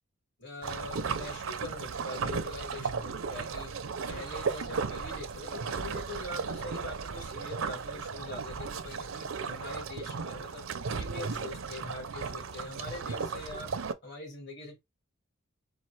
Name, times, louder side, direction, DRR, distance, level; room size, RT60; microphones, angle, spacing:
voice 1, 0.4-3.7 4.1-10.7 11.0-13.7 14.0-14.8, left 2 dB, 55° left, 2.0 m, -43 dB
sound 1, 0.6-13.9, right 5 dB, 75° right, 0.6 m, -35 dB
4.3 x 2.4 x 4.6 m
head